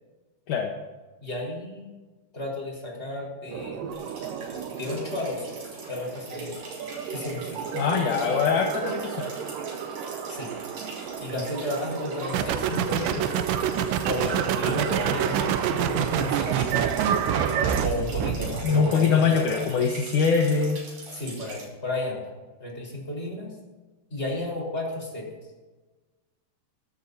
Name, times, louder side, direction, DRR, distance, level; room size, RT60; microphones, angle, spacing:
voice 1, 1.2-1.9 2.3-3.8 4.8-5.6 5.9-6.6 7.1-7.7 10.3-10.5 11.2-13.5 14.1-16.8 17.8-19.6 21.1-22.3 22.6-23.5 24.1-25.2, left 1 dB, 15° left, -2 dB, 4.5 m, -33 dB
sound 1, 3.5-17.8, right 7 dB, 70° right, 2.3 m, -33 dB
sound 2, 3.9-21.6, right 2 dB, 40° right, 5.6 m, -43 dB
voice 2, 7.7-9.3 18.6-20.8, left 5 dB, 70° left, 1 dB, 2.0 m, -23 dB
sound 3, 12.3-18.7, right 9 dB, 85° right, 3.1 m, -27 dB
23.0 x 15.0 x 2.8 m, 1.3 s
omnidirectional pair, 5.0 m